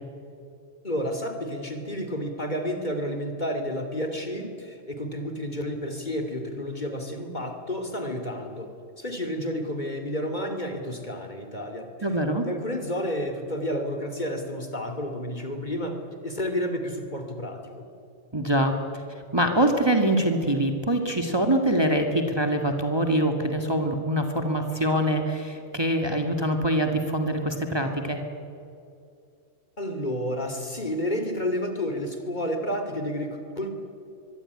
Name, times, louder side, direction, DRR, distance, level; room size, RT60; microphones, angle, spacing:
voice 1, 0.8-11.9 12.4-17.9 29.8-33.8, equal, 35° left, 6 dB, 3.3 m, -31 dB
voice 2, 12.0-12.4 18.3-19.0 19.3-28.2, right 1 dB, 20° right, 4 dB, 2.0 m, -24 dB
24.5 x 23.0 x 9.9 m, 2.6 s
omnidirectional pair, 1.3 m